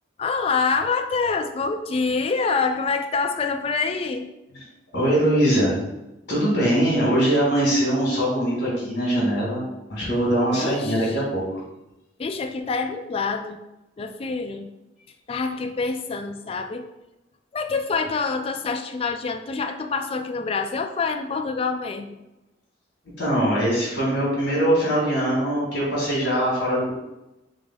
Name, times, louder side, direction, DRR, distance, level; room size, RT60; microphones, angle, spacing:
voice 1, 0.2-4.3 10.5-10.9 12.2-13.6 14.0-14.7 15.3-16.9 17.5-22.1, left 4 dB, 30° left, 6 dB, 0.3 m, -26 dB
voice 2, 4.9-5.8 6.3-9.6 9.9-11.6 23.2-26.9, right 1 dB, 60° left, -6 dB, 1.6 m, -22 dB
3.9 x 3.4 x 3.7 m, 0.96 s
head